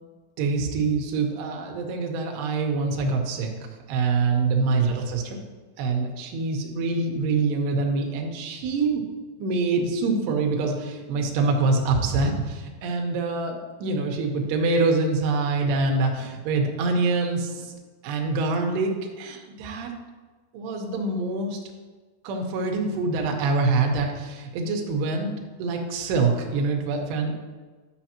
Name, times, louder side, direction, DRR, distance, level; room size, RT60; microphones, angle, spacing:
voice 1, 0.4-3.5 3.9-5.4 5.8-9.1 9.4-17.8 18.0-19.9 20.5-21.6 22.2-27.5, right 3 dB, 75° right, 2 dB, 2.9 m, -25 dB
11.0 x 6.8 x 2.9 m, 1.4 s
omnidirectional pair, 5.1 m